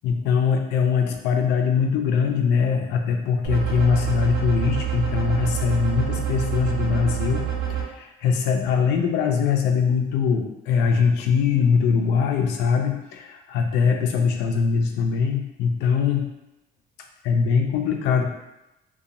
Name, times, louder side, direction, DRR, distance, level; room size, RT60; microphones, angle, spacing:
voice 1, 0.0-7.4 7.7-16.3 17.2-18.2, left 6 dB, 90° left, 3 dB, 0.4 m, -22 dB
sound 1, 3.4-7.8, right 9 dB, 70° right, 0.7 m, -27 dB
2.5 x 2.2 x 2.8 m, 0.93 s
cardioid pair, 110°, 17 cm